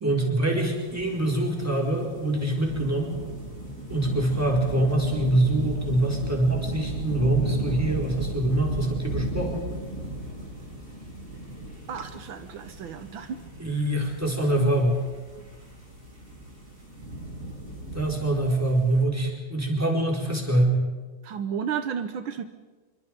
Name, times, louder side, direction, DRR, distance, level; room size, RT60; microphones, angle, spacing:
voice 1, 0.0-3.2 3.9-9.7 13.6-15.0 17.9-20.8, right 1 dB, 5° right, -1 dB, 4.6 m, -24 dB
sound 1, 0.7-19.0, right 1 dB, 35° right, 7.7 m, -36 dB
voice 2, 11.9-13.4 13.7-13.8 21.2-22.4, right 7 dB, 75° right, 9 dB, 1.8 m, -33 dB
26.5 x 24.0 x 5.3 m, 1.3 s
omnidirectional pair, 2.2 m